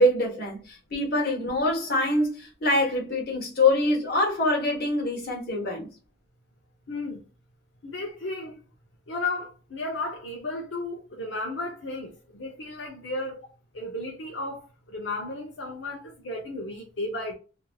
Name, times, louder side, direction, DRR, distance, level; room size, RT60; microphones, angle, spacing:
voice 1, 0.0-5.9, left 1 dB, 55° left, 1.2 m, -24 dB
voice 2, 6.9-7.2 7.8-8.6 9.1-13.4 13.7-17.3, left 2 dB, 80° left, 0.7 m, -34 dB
2.9 x 2.6 x 2.3 m
head